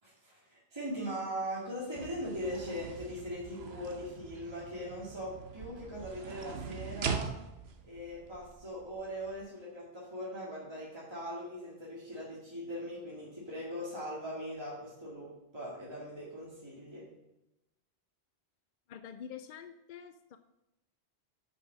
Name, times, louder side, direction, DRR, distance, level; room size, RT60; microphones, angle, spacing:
voice 1, 0.0-7.3 7.8-15.3 15.5-17.0, equal, 25° right, -6 dB, 2.1 m, -40 dB
sound 1, 1.9-9.4, right 5 dB, 70° right, 1.1 m, -42 dB
voice 2, 18.9-20.4, left 8 dB, 60° left, 9 dB, 0.6 m, -46 dB
8.5 x 5.5 x 6.1 m, 0.92 s
omnidirectional pair, 1.1 m